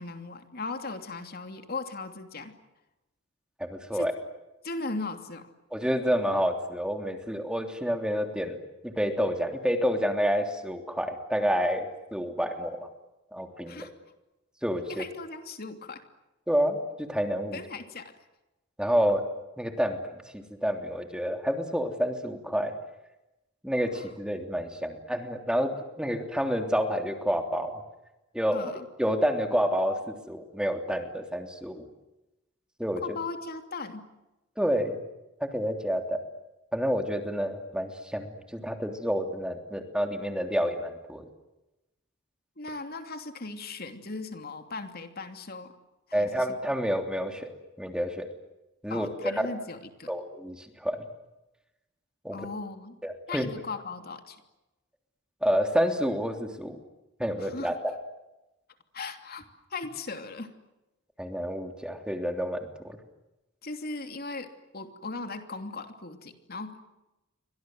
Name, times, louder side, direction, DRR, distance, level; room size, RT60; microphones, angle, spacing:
voice 1, 0.0-2.6 3.9-4.1 4.6-5.5 13.7-13.9 14.9-16.0 17.5-18.1 23.9-24.1 28.5-28.9 33.0-34.1 42.6-45.7 46.1-46.5 48.9-50.1 52.3-53.0 53.3-54.4 57.4-57.7 58.9-60.5 63.6-66.8, left 3 dB, 50° left, 7 dB, 2.9 m, -38 dB
voice 2, 3.6-4.1 5.7-8.6 8.8-12.9 13.3-13.9 14.6-15.0 16.5-17.6 18.8-19.2 19.6-20.0 20.3-22.7 23.6-27.8 28.3-28.7 29.0-31.9 32.8-33.2 34.6-35.0 35.4-36.2 36.7-41.2 46.1-47.5 47.8-48.3 48.8-49.5 50.1-51.1 52.2-52.5 53.0-53.5 55.4-56.8 57.2-58.0 61.2-63.0, equal, 5° right, 5 dB, 3.2 m, -29 dB
30.0 x 25.0 x 7.9 m, 0.97 s
head